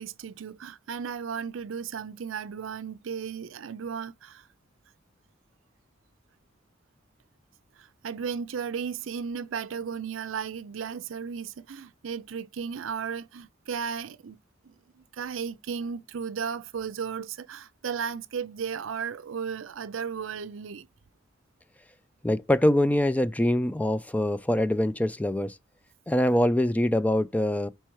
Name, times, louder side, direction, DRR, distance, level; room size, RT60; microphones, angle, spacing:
voice 1, 0.0-4.5 7.8-14.4 14.6-20.9, right 6 dB, 80° right, 0.5 m, -35 dB
voice 2, 22.2-25.6 26.1-27.7, left 1 dB, 10° left, 0.3 m, -24 dB
4.6 x 4.5 x 4.6 m
head